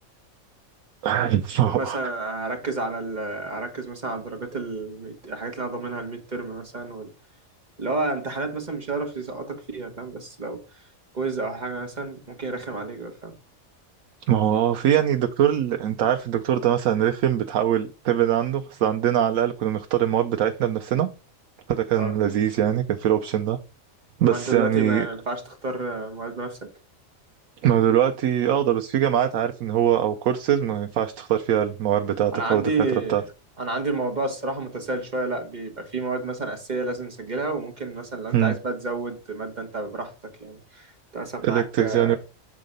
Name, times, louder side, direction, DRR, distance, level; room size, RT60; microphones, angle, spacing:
voice 1, 1.0-2.0 14.3-21.1 21.7-23.6 24.2-25.1 27.6-32.7 33.1-33.2 38.3-38.5 41.4-42.2, right 10 dB, 90° right, 1.0 m, -22 dB
voice 2, 1.6-7.1 7.8-10.6 11.1-13.3 21.9-22.1 24.2-26.7 32.3-33.2 33.6-40.1 40.4-42.2, right 3 dB, 35° right, 1.4 m, -30 dB
7.4 x 3.8 x 5.2 m
omnidirectional pair, 1.4 m